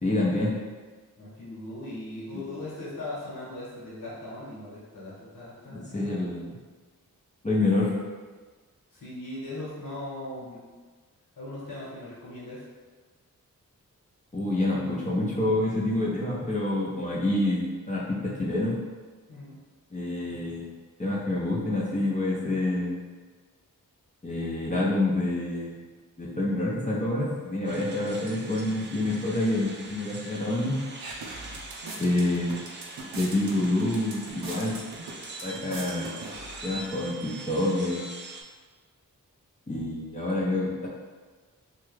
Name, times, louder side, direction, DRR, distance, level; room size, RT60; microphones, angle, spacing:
voice 1, 0.0-0.5 2.3-2.4 5.7-6.5 7.4-7.9 14.3-18.8 19.9-20.7 21.0-23.0 24.2-25.8 26.2-30.8 32.0-32.6 33.1-34.8 35.4-36.1 36.6-38.0 39.7-40.9, left 2 dB, 20° left, -6 dB, 0.7 m, -27 dB
voice 2, 1.2-6.2 8.9-10.6 11.3-12.7 19.3-19.6 27.7-27.9 32.0-32.2, left 1 dB, 65° left, -8 dB, 1.2 m, -39 dB
sound 1, 27.6-38.4, right 2 dB, 35° right, 0.4 m, -43 dB
sound 2, 30.6-37.5, right 2 dB, 85° right, 0.6 m, -42 dB
3.0 x 2.3 x 3.1 m, 1.4 s
cardioid pair, 55°, 34 cm